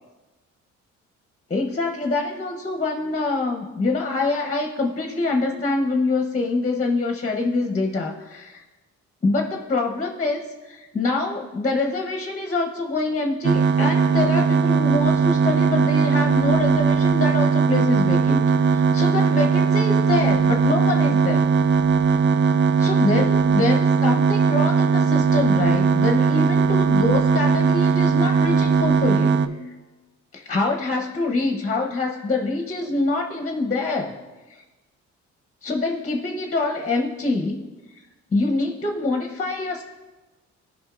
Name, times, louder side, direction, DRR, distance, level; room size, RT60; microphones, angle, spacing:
voice 1, 1.5-8.6 9.2-21.5 22.8-29.7 30.3-34.2 35.6-37.6 38.3-39.8, left 3 dB, 25° left, 2 dB, 0.9 m, -25 dB
sound 1, 13.4-29.5, right 5 dB, 40° right, 0.4 m, -19 dB
14.5 x 5.2 x 2.5 m, 1.2 s
cardioid pair, 90°, 30 cm